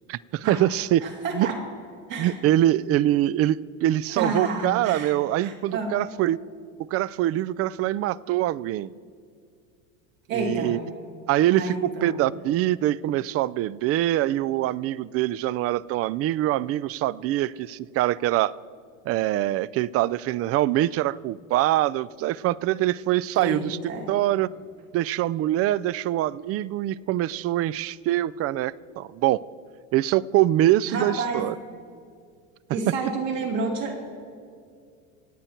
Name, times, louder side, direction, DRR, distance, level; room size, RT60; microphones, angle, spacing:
voice 1, 0.1-1.0 1.3-1.5 2.2-6.4 6.9-8.9 10.3-10.8 11.3-18.6 19.1-23.8 24.1-24.5 24.9-29.4 29.9-31.5, right 14 dB, 40° right, 21 dB, 0.4 m, -24 dB
voice 2, 1.0-1.6 2.1-2.4 4.1-5.1 5.4-6.0 10.3-10.8 11.5-12.2 23.3-24.1 30.9-31.4 32.7-34.2, right 3 dB, 80° right, 0 dB, 3.1 m, -30 dB
25.5 x 8.8 x 4.4 m, 2.3 s
hypercardioid pair, 90°, 38 cm